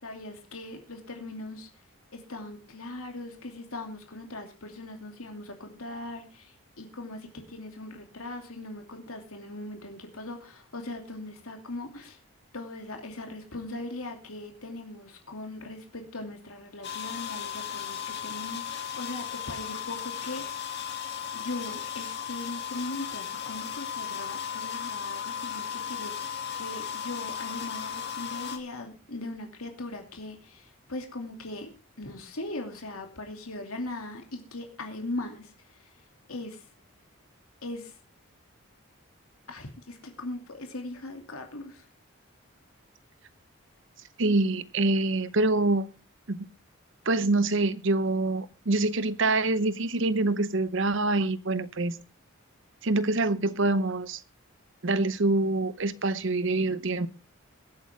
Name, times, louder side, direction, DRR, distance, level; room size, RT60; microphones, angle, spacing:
voice 1, 0.0-1.7 2.1-12.2 12.5-20.8 21.3-31.7 32.0-35.9 36.3-36.6 37.6-38.0 39.5-41.9, left 2 dB, 80° left, 2.7 m, -40 dB
sound 1, 16.8-28.6, left 8 dB, 50° left, 2.1 m, -36 dB
voice 2, 44.2-45.9 46.3-46.5 47.1-52.0 52.8-54.2 54.8-57.1, right 2 dB, 55° right, 0.8 m, -25 dB
23.0 x 8.5 x 3.5 m
head